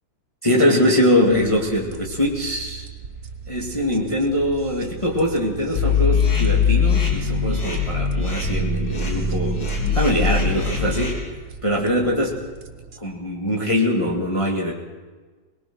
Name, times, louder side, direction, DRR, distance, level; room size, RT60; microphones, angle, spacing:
voice 1, 0.4-2.9 3.5-9.6 9.9-11.2 11.6-12.5 13.0-14.7, left 1 dB, 15° left, -2 dB, 2.2 m, -22 dB
sound 1, 1.3-13.0, right 6 dB, 45° right, 1.7 m, -39 dB
sound 2, 5.7-11.1, left 4 dB, 75° left, 4.9 m, -21 dB
23.0 x 20.0 x 6.3 m, 1.3 s
omnidirectional pair, 2.1 m